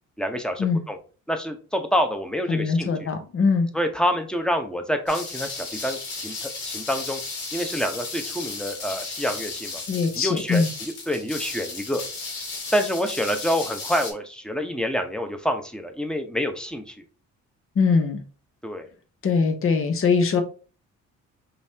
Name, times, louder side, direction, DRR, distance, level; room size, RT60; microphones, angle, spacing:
voice 1, 0.2-1.0 1.3-3.1 3.7-6.0 6.2-7.2 7.5-9.8 10.2-12.0 12.7-16.9 18.6-18.9, equal, 5° left, 1.0 m, -27 dB
voice 2, 2.5-3.7 9.9-10.7 17.8-18.2 19.2-20.4, left 5 dB, 45° left, 1.0 m, -22 dB
sound 1, 5.1-14.1, left 3 dB, 90° left, 1.9 m, -34 dB
5.4 x 3.2 x 2.8 m
cardioid pair, 90°, 30 cm